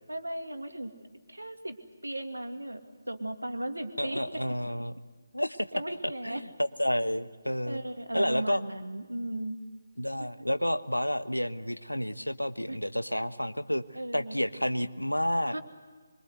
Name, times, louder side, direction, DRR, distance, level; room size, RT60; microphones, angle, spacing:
voice 1, 0.1-0.9 1.3-1.8 2.0-2.8 3.1-4.4 5.7-6.4 7.7-9.6 10.2-10.3 12.7-12.8 13.9-14.4 15.5-15.6, right 1 dB, 80° right, 6 dB, 2.5 m, -36 dB
voice 2, 4.0-4.9 5.3-5.7 6.2-7.8 8.1-8.6 10.0-13.8 14.1-15.6, equal, 90° left, 12 dB, 1.2 m, -30 dB
25.0 x 23.5 x 8.0 m, 1.5 s
figure-of-eight pair, 150°, 0 cm